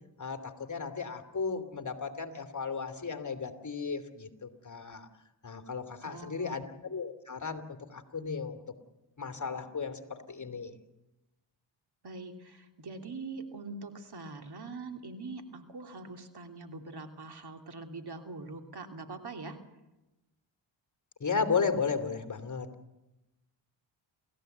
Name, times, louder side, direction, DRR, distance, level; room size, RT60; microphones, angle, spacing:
voice 1, 0.2-5.1 5.4-8.6 9.2-10.8 21.2-22.7, left 5 dB, 35° left, 6 dB, 2.7 m, -34 dB
voice 2, 6.0-6.6 12.0-19.6, right 3 dB, 50° right, 5 dB, 3.0 m, -43 dB
29.5 x 14.5 x 8.0 m, 1.0 s
cardioid pair, 65°, 49 cm